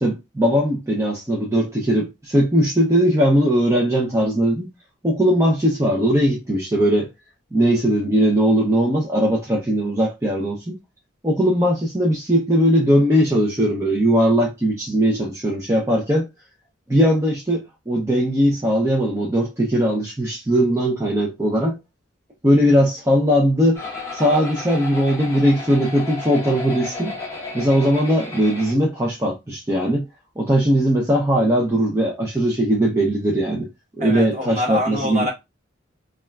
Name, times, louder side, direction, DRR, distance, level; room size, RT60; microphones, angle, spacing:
voice 1, 0.0-4.7 5.0-7.1 7.5-10.8 11.2-16.3 16.9-21.8 22.4-23.9 24.1-27.1 27.5-30.1 30.4-33.7 34.0-35.3, equal, 15° right, 0.4 m, -19 dB
sound 1, 23.7-28.7, left 3 dB, 15° left, 0.8 m, -33 dB
voice 2, 34.0-35.3, left 1 dB, 40° right, 1.2 m, -25 dB
3.1 x 2.3 x 2.2 m
head